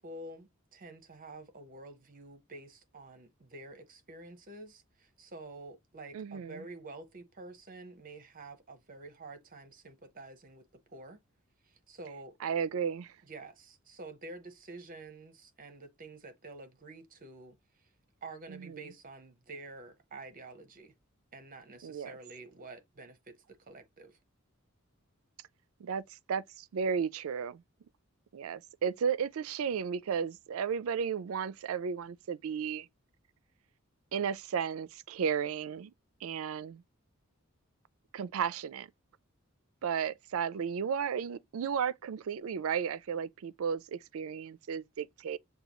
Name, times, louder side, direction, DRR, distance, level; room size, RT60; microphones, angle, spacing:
voice 1, 0.0-11.2 11.6-12.4 13.2-17.9 18.2-20.9 21.3-24.2, right 2 dB, 40° right, 0.8 m, -49 dB
voice 2, 6.1-6.6 12.4-13.1 18.5-18.8 21.8-22.2 25.8-27.6 28.3-32.9 34.1-35.9 36.2-36.8 38.1-38.9 39.8-45.4, right 7 dB, 75° right, 0.4 m, -34 dB
6.6 x 2.3 x 2.9 m
head